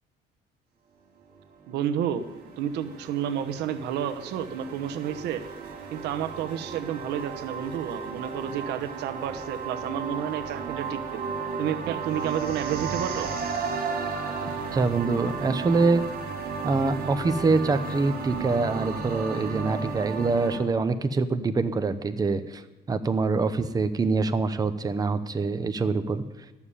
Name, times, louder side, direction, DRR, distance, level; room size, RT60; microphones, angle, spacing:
sound 1, 1.3-20.6, right 5 dB, 60° right, 3.1 m, -34 dB
voice 1, 1.7-2.3 2.6-5.4 5.9-11.2 11.6-13.3, right 9 dB, 80° right, 10 dB, 1.0 m, -30 dB
voice 2, 14.7-16.0 16.6-22.6 22.9-26.2, right 3 dB, 20° right, 10 dB, 0.8 m, -25 dB
13.0 x 7.2 x 9.9 m, 1.1 s
cardioid pair, 110°, 17 cm